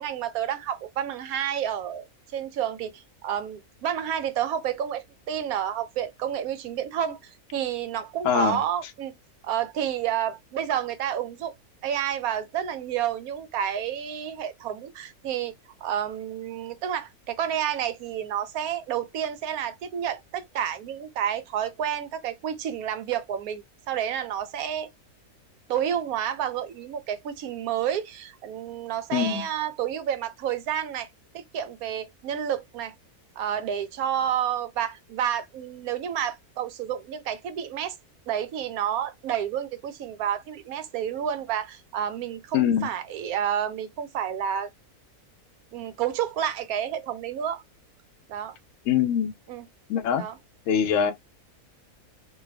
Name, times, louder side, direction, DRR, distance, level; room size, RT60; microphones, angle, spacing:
voice 1, 0.0-9.1 9.4-11.5 11.8-15.5 15.8-24.9 25.7-31.1 31.3-32.9 33.4-37.9 38.3-44.7 45.7-47.6 48.3-48.6 49.5-49.6 50.1-50.4, right 9 dB, 75° right, 1.1 m, -30 dB
voice 2, 8.2-8.6 29.1-29.4 42.5-42.9 48.9-49.3 49.9-50.2 50.7-51.1, left 8 dB, 70° left, 0.8 m, -23 dB
3.2 x 2.3 x 3.3 m
omnidirectional pair, 1.6 m